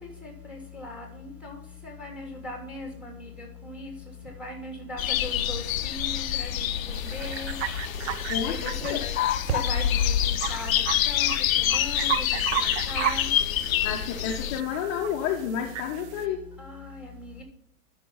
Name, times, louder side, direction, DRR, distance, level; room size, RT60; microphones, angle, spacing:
voice 1, 0.0-3.9 4.4-7.5 8.5-9.0 9.5-11.3 11.6-13.3 16.6-17.4, left 2 dB, 5° right, 1 dB, 3.1 m, -39 dB
sound 1, 5.0-14.6, left 11 dB, 65° left, 0.8 m, -27 dB
sound 2, 6.9-16.3, right 11 dB, 50° right, 0.7 m, -35 dB
voice 2, 8.3-9.1 13.8-16.4, left 8 dB, 35° left, 2 dB, 1.1 m, -30 dB
12.0 x 6.1 x 4.0 m, 0.71 s
hypercardioid pair, 135°, 44 cm